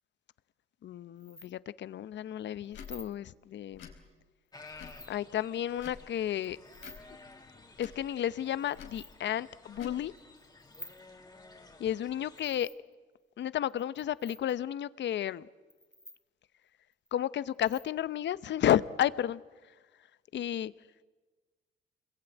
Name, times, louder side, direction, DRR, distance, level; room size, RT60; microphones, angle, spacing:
voice 1, 0.8-3.9 5.1-6.6 7.8-10.1 11.8-12.7 13.4-15.5 17.1-19.4 20.3-20.7, left 11 dB, 65° left, 0.9 m, -32 dB
sound 1, 1.2-1.5 2.7-3.1 4.5-5.1 6.4-7.0 8.4-9.1 10.2-11.0 12.4-12.9 13.7-14.5 15.7-16.2 16.9-17.1 17.5-17.9, left 1 dB, 5° left, 2.2 m, -50 dB
Tick / Tick-tock, 2.7-2.9 3.7-4.0 4.7-5.0 5.7-6.1 6.7-7.0 7.7-8.0 8.7-9.0 9.7-10.0, left 7 dB, 80° left, 4.7 m, -48 dB
sound 2, 4.5-12.6, left 3 dB, 20° left, 2.8 m, -54 dB
27.5 x 22.0 x 9.2 m
cardioid pair, 90°, 20 cm